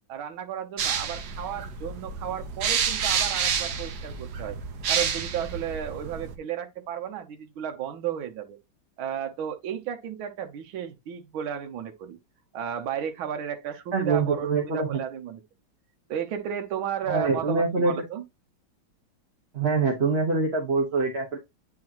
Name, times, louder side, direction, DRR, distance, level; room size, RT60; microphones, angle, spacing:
voice 1, 0.1-4.6 4.9-8.6 9.0-12.2 12.5-15.4 16.1-18.2, right 9 dB, 75° right, 1.7 m, -33 dB
sound 1, 0.8-6.4, right 7 dB, 60° right, 1.3 m, -29 dB
voice 2, 13.9-15.0 17.1-17.9 19.5-21.4, right 4 dB, 35° right, 1.4 m, -24 dB
9.5 x 4.4 x 2.9 m
omnidirectional pair, 2.3 m